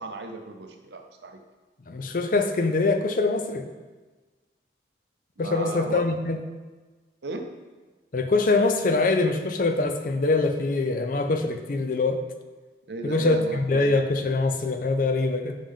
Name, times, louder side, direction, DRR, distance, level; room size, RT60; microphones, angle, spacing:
voice 1, 0.0-1.4 5.4-6.0 7.2-7.5 12.9-13.9, right 2 dB, 70° right, 5 dB, 0.7 m, -36 dB
voice 2, 1.9-3.7 5.4-6.4 8.1-12.2 13.0-15.6, left 3 dB, 50° left, 7 dB, 0.5 m, -24 dB
5.3 x 5.2 x 3.6 m, 1.3 s
head